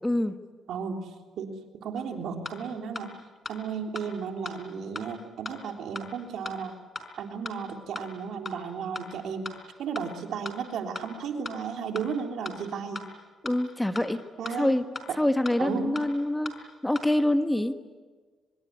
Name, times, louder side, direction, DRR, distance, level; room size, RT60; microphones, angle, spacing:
voice 1, 0.0-0.3 13.4-14.2 14.5-14.8 15.2-16.5 16.8-17.7, left 1 dB, 10° left, 8 dB, 1.4 m, -25 dB
voice 2, 0.7-3.1 3.5-6.8 7.2-9.5 9.8-13.0 14.4-14.8 15.6-16.0, right 6 dB, 75° right, 3 dB, 3.5 m, -34 dB
sound 1, 2.0-2.1 2.4-2.6 2.9-3.1 3.4-3.6 3.9-4.1 4.4-4.6 4.9-5.1 5.4-5.6 5.9-6.1 6.4-6.6 6.9-7.1 7.4-7.6 7.9-8.1 8.4-8.6 8.9-9.1 9.4-9.6 9.9-10.1 10.4-10.6 10.9-11.1 11.4-11.6 11.9-12.1 12.4-12.6 12.9-13.1 13.4-13.6 13.9-14.1 14.4-14.6 14.9-15.1 15.4-15.6 15.9-16.1 16.4-16.6 16.9-17.1, left 3 dB, 30° left, 4.5 m, -37 dB
25.0 x 22.5 x 9.8 m, 1.4 s
cardioid pair, 90°, 0 cm